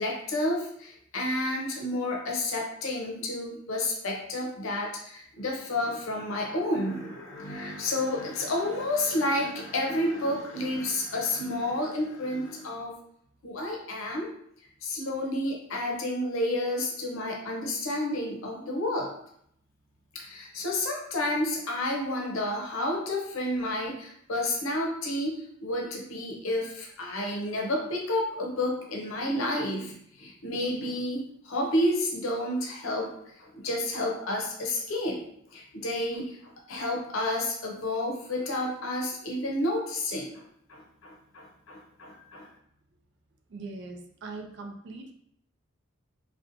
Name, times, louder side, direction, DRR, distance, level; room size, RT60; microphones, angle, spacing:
voice 1, 0.0-12.9 13.4-14.3 14.8-19.1 20.1-40.4 40.7-42.5, left 1 dB, 80° left, 0 dB, 0.6 m, -30 dB
voice 2, 43.5-45.1, right 3 dB, 55° right, 3 dB, 0.4 m, -41 dB
2.8 x 2.1 x 2.5 m, 0.70 s
head